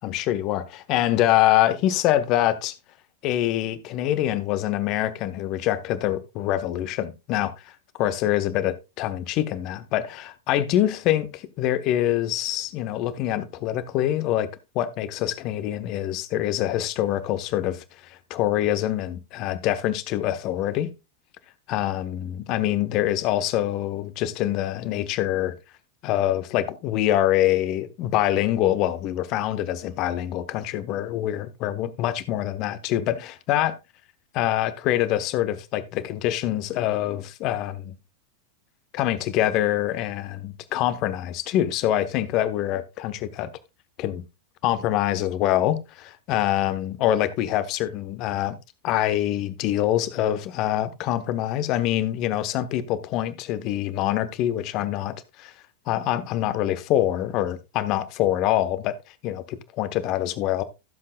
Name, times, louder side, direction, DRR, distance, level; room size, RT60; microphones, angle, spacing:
voice 1, 0.0-2.7 3.2-7.5 8.0-14.5 14.7-17.8 18.1-20.9 21.7-25.5 26.0-33.8 34.3-37.9 38.9-43.5 44.0-44.2 44.6-48.6 48.8-55.5 55.9-58.9 59.2-60.6, left 13 dB, 40° left, 1.0 m, -25 dB
15.5 x 7.7 x 2.3 m
figure-of-eight pair, 90°, 0 cm